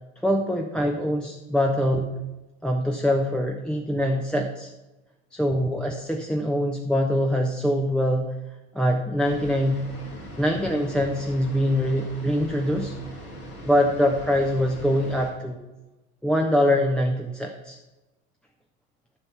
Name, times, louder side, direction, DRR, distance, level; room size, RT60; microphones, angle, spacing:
voice 1, 0.2-2.1 2.6-4.7 5.3-8.3 8.7-9.8 10.4-12.9 13.6-15.6 16.2-17.8, equal, ahead, 1 dB, 0.7 m, -23 dB
sound 1, 9.2-15.3, equal, 85° left, 3.0 m, -40 dB
11.0 x 6.8 x 5.8 m, 1.1 s
figure-of-eight pair, 75°, 44 cm